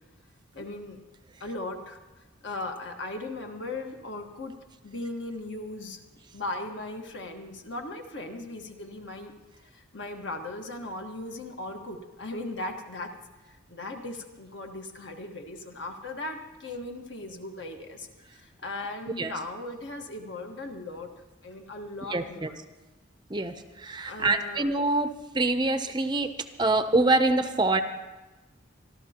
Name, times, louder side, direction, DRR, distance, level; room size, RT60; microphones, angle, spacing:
voice 1, 0.5-1.0 1.4-2.0 2.4-4.6 4.8-6.0 6.3-9.3 9.7-13.1 13.7-18.1 18.3-21.1 21.4-22.6 24.0-24.7 26.0-26.1, left 2 dB, 65° left, 3 dB, 1.5 m, -38 dB
voice 2, 22.1-22.5 23.3-23.5 23.8-25.1 25.3-26.3 26.6-27.8, right 2 dB, 20° right, 9 dB, 0.6 m, -25 dB
26.0 x 12.5 x 2.9 m, 1.2 s
head